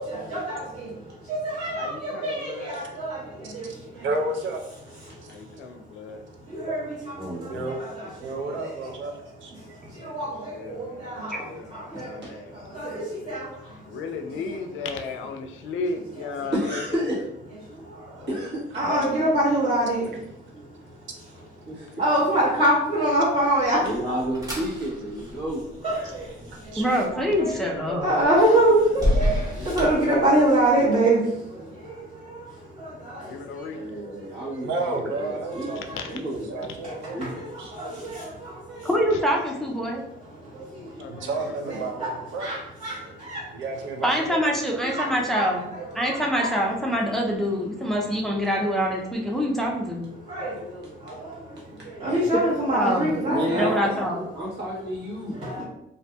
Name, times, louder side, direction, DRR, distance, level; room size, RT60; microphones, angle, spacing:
voice 1, 0.0-4.1 5.1-5.2 6.4-8.9 9.6-12.2 12.5-13.9 14.2-14.3 17.7-18.1 18.7-20.2 20.5-20.6 21.6-21.7 22.0-23.9 25.8-26.8 27.4-27.5 28.0-34.1 35.5-36.0 36.8-38.9 40.4-41.3 41.7-42.1 42.4-43.5 44.8-45.8 46.1-46.6 50.3-54.0 55.4-55.6, right 1 dB, 35° right, -10 dB, 1.0 m, -26 dB
voice 2, 1.8-3.0 5.3-6.2 9.9-13.5 13.8-17.1 18.2-18.5 18.9-19.6 27.1-28.4 29.5-30.2 33.2-33.8 35.9-36.0 39.1-39.2 40.8-41.9, left 4 dB, 80° left, 5 dB, 0.4 m, -36 dB
voice 3, 4.0-4.6 7.5-7.8 8.2-9.1 9.4-9.5 18.1-18.3 26.5-26.8 34.6-36.0 36.5-37.3 37.6-37.7 41.1-42.6 43.0-44.5, right 2 dB, 75° right, 3 dB, 0.5 m, -32 dB
voice 4, 7.1-7.8 9.8-9.9 16.5-17.2 18.3-18.9 21.7-21.9 23.7-25.6 33.7-37.4 41.2-41.3 52.0-52.5 52.8-53.0 53.3-55.3, right 1 dB, 60° right, -5 dB, 1.2 m, -31 dB
sound 1, 23.5-30.8, left 1 dB, 20° right, 1.2 m, -31 dB
voice 5, 26.8-28.1 38.8-40.0 44.0-45.6 45.9-50.0 52.7-53.1 53.5-54.2, equal, ahead, -1 dB, 0.4 m, -25 dB
2.5 x 2.5 x 2.2 m, 0.83 s
cardioid pair, 90°, 20 cm